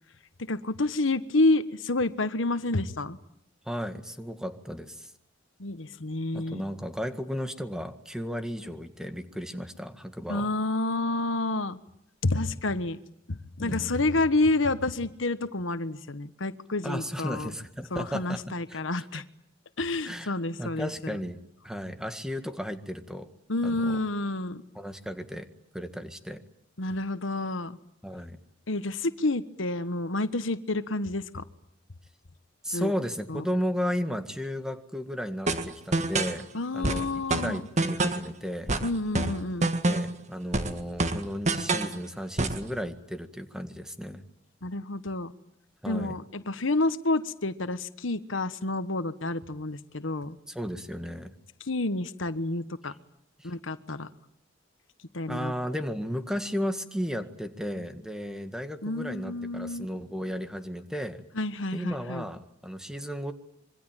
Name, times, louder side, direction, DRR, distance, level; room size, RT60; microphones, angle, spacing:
voice 1, 0.4-3.2 5.6-6.6 10.3-11.8 12.2-13.0 13.3-17.5 17.9-19.2 19.8-21.1 23.5-24.6 26.8-27.8 28.7-31.4 32.7-32.9 33.3-33.4 36.5-37.6 38.8-39.7 44.6-45.3 45.9-50.4 51.7-52.9 53.4-54.1 55.1-55.5 58.8-59.9 61.4-62.2, left 2 dB, 80° left, 12 dB, 1.3 m, -29 dB
voice 2, 3.7-5.1 6.3-10.5 13.6-14.1 16.8-19.2 20.0-23.3 23.6-24.0 24.8-25.5 25.7-26.4 28.0-28.4 32.6-35.5 35.9-36.5 36.7-37.1 37.4-38.7 39.8-44.2 45.8-46.2 50.5-51.3 52.8-52.9 53.4-53.5 55.3-61.2 61.7-63.3, equal, 5° right, 8 dB, 1.8 m, -34 dB
sound 1, 35.5-36.4 36.8-38.3 38.7-40.2 40.5-42.0 42.4-42.7, right 2 dB, 40° right, 1.7 m, -27 dB
26.0 x 24.0 x 9.1 m, 0.73 s
head